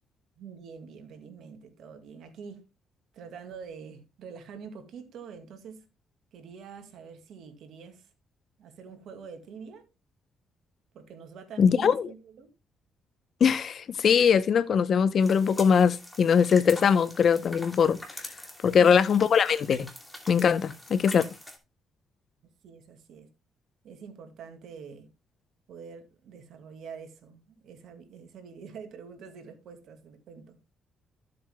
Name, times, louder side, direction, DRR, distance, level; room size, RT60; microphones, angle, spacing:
voice 1, 0.4-2.6 3.1-5.9 6.3-8.1 8.6-9.8 10.9-12.5 22.6-23.3 23.8-25.1 25.7-30.6, right 6 dB, 75° right, 2.1 m, -45 dB
voice 2, 11.6-12.1 13.4-18.0 18.6-19.9 20.3-21.3, left 7 dB, 55° left, 0.7 m, -21 dB
sound 1, 15.2-21.6, left 1 dB, 5° left, 2.6 m, -44 dB
14.5 x 7.7 x 2.2 m
cardioid pair, 90°, 0 cm